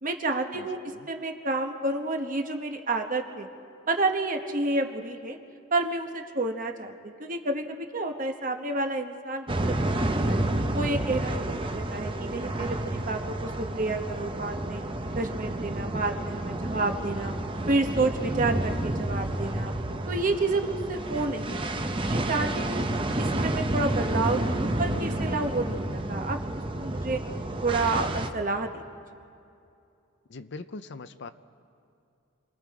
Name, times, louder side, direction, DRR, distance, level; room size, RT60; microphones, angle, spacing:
voice 1, 0.0-0.8 1.1-3.5 3.9-5.4 5.7-10.4 10.7-14.8 15.1-17.3 17.7-19.7 20.1-22.8 23.2-26.4 26.8-27.2 27.6-28.8, right 2 dB, 40° right, 5 dB, 1.1 m, -30 dB
voice 2, 0.5-1.1 30.3-31.3, left 3 dB, 55° left, 11 dB, 0.6 m, -42 dB
sound 1, 9.5-28.3, right 1 dB, 25° right, 0.8 m, -30 dB
27.5 x 20.5 x 4.8 m, 2.6 s
head